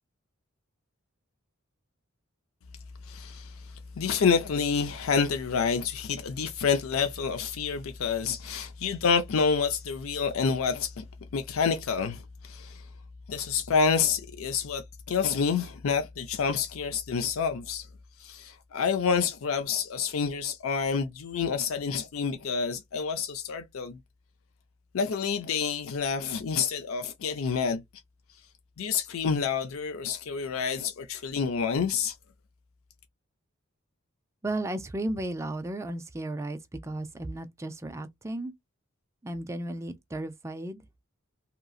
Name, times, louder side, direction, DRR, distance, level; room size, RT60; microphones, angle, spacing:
voice 1, 3.1-3.7 4.0-11.0 11.3-12.8 13.3-17.9 18.2-24.0 24.9-27.8 28.8-32.1, left 6 dB, 75° left, 0.5 m, -28 dB
voice 2, 34.4-38.5 39.2-40.9, right 1 dB, 15° right, 0.4 m, -34 dB
2.9 x 2.5 x 2.3 m
head